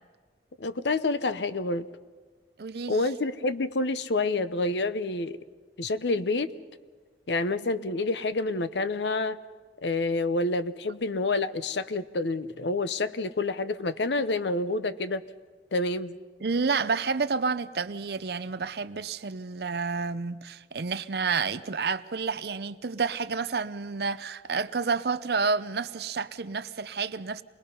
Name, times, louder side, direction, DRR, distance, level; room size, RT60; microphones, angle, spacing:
voice 1, 0.6-1.9 2.9-5.4 5.8-6.5 7.3-9.4 9.8-15.2 15.7-16.2, left 2 dB, 75° left, 0.8 m, -28 dB
voice 2, 2.6-3.0 16.4-27.4, right 5 dB, 60° right, 0.6 m, -30 dB
27.0 x 20.5 x 5.5 m
head